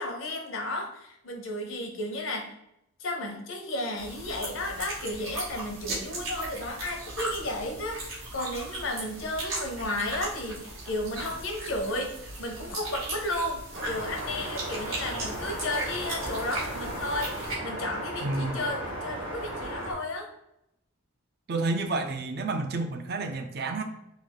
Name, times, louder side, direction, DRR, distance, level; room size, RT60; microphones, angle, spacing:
voice 1, 0.0-2.6 3.0-12.1 12.4-20.3, left 1 dB, 75° left, 2 dB, 0.8 m, -33 dB
sound 1, 4.0-17.5, right 2 dB, 90° right, 1.4 m, -37 dB
sound 2, 13.7-19.9, equal, 70° right, 1.0 m, -36 dB
voice 2, 18.2-18.6 21.5-23.8, right 3 dB, 50° right, 6 dB, 0.4 m, -30 dB
3.4 x 2.4 x 3.5 m, 0.82 s
head